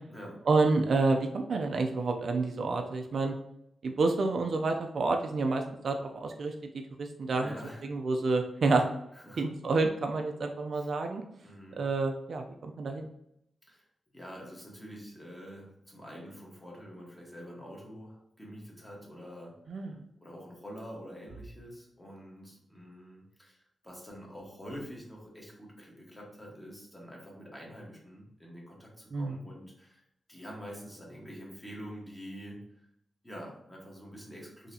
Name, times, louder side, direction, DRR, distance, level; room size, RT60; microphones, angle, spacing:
voice 1, 0.5-3.3 3.8-6.5 7.0-7.6 7.8-8.9 9.4-11.2 11.7-13.1 19.7-20.0 29.1-29.4, right 3 dB, 60° right, 4 dB, 0.4 m, -29 dB
voice 2, 7.3-7.9 9.1-9.5 10.7-10.9 11.4-11.8 13.7-13.9 14.1-19.8 20.2-30.0 30.3-32.8 33.2-34.7, equal, 10° left, -2 dB, 1.2 m, -46 dB
4.0 x 2.8 x 2.7 m, 0.74 s
wide cardioid pair, 115°, 0 cm